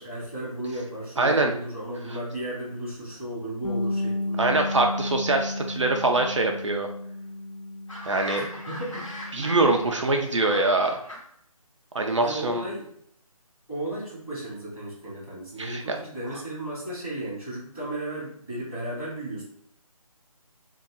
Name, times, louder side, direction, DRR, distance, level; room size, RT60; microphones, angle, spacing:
voice 1, 0.0-4.5 8.3-9.1 12.2-12.9 13.7-19.4, right 1 dB, 5° left, -17 dB, 0.5 m, -34 dB
voice 2, 1.2-1.5 4.4-6.9 8.1-8.4 9.3-11.0 11.9-12.6 15.6-16.0, right 2 dB, 55° right, 3 dB, 0.4 m, -23 dB
Bass guitar, 3.6-9.9, left 2 dB, 90° left, 0.5 m, -33 dB
sound 1, 7.9-11.2, left 1 dB, 60° left, 1.2 m, -40 dB
2.7 x 2.3 x 3.7 m, 0.69 s
figure-of-eight pair, 170°, 19 cm